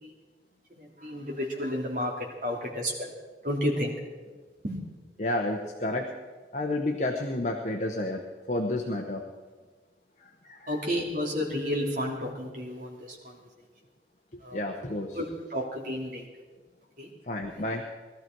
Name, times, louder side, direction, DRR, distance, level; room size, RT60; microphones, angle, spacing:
voice 1, 0.8-2.1 2.4-3.1 3.4-3.9 4.6-4.8 10.7-13.4 14.4-14.6 15.1-15.2 15.5-16.2 17.0-17.1 17.5-17.6, equal, 50° right, -1 dB, 3.1 m, -31 dB
voice 2, 5.2-6.1 6.5-8.2 8.5-9.2 10.2-10.8 14.5-15.2 17.3-17.8, left 1 dB, 40° left, 2 dB, 1.0 m, -30 dB
20.0 x 13.0 x 4.6 m, 1.4 s
head